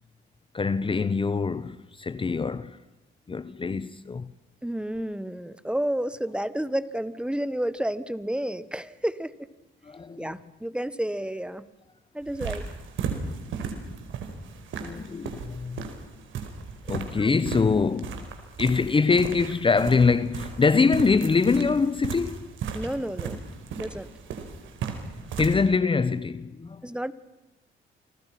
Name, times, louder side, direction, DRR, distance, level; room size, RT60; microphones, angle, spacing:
voice 1, 0.5-2.8 3.3-4.3 9.8-10.4 14.8-15.9 16.9-18.3 18.6-22.5 25.4-26.9, left 4 dB, 25° left, 0.9 m, -24 dB
voice 2, 4.6-9.3 10.2-11.6 12.1-12.7 17.2-17.4 22.7-23.4 23.8-24.1 26.8-27.1, right 1 dB, 5° right, 1.4 m, -30 dB
sound 1, 12.2-25.6, right 6 dB, 80° right, 4.6 m, -36 dB
29.0 x 24.5 x 6.0 m
cardioid pair, 90°, 20 cm